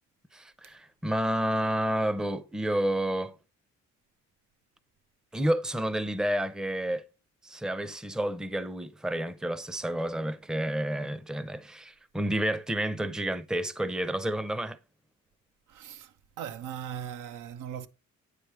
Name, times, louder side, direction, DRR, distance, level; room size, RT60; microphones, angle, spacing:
voice 1, 0.3-3.4 5.3-7.0 7.4-14.8, right 1 dB, ahead, 0.5 m, -30 dB
voice 2, 15.7-16.1 16.4-17.9, right 9 dB, 90° right, 0.7 m, -38 dB
9.0 x 4.9 x 3.0 m
cardioid pair, 90°, 30 cm